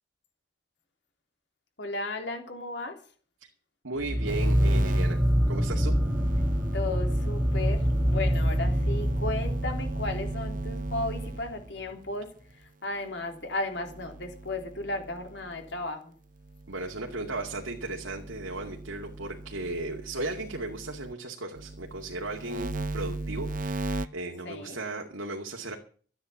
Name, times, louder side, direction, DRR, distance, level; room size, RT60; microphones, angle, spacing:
voice 1, 1.8-3.0 6.7-12.3 12.8-16.1 24.4-24.8, left 2 dB, 60° left, 4 dB, 3.5 m, -34 dB
voice 2, 3.8-5.2 5.5-6.0 16.7-25.8, right 2 dB, 90° right, 1 dB, 2.3 m, -36 dB
sound 1, 4.0-11.3, equal, 5° right, 0.8 m, -26 dB
sound 2, 4.3-11.7 13.7-15.9 16.4-21.1 21.6-24.1, right 2 dB, 45° right, 0.7 m, -36 dB
14.0 x 9.5 x 7.2 m, 0.43 s
head